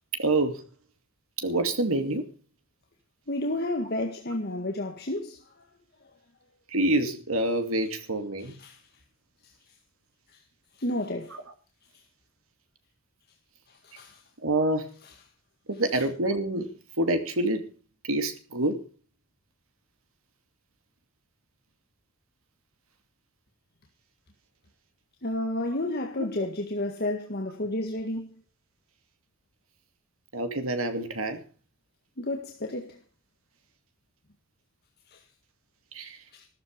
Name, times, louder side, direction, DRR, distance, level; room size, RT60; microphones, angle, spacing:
voice 1, 0.2-0.6 1.4-2.3 6.7-8.5 14.4-14.9 15.7-16.7 17.0-17.7 18.1-18.8 26.4-26.5 30.3-31.4 35.9-36.2, right 2 dB, 85° right, 2.5 m, -27 dB
voice 2, 3.3-5.4 8.4-8.8 10.8-11.4 13.8-14.2 25.2-28.3 32.2-33.0 35.1-35.2 36.4-36.5, left 1 dB, 50° left, 1.8 m, -31 dB
14.0 x 13.5 x 5.2 m
head